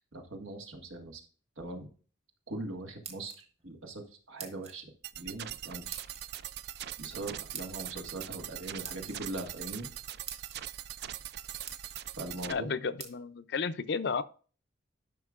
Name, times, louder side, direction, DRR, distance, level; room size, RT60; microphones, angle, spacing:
voice 1, 0.1-1.2 1.6-1.9 2.5-4.9 5.2-6.0 7.0-9.9 12.1-12.7, right 2 dB, 85° right, 1.7 m, -41 dB
sound 1, 2.8-3.7 4.4-4.8 5.9-6.2 7.5-7.9 8.8-9.2 9.9-10.0 10.3-10.6 11.2-11.3 11.6-12.0 13.0-13.1, right 6 dB, 30° right, 1.3 m, -44 dB
sound 2, 5.0-12.5, right 12 dB, 55° right, 0.3 m, -42 dB
voice 2, 12.5-14.2, left 5 dB, 55° left, 0.5 m, -33 dB
12.5 x 5.7 x 2.4 m
head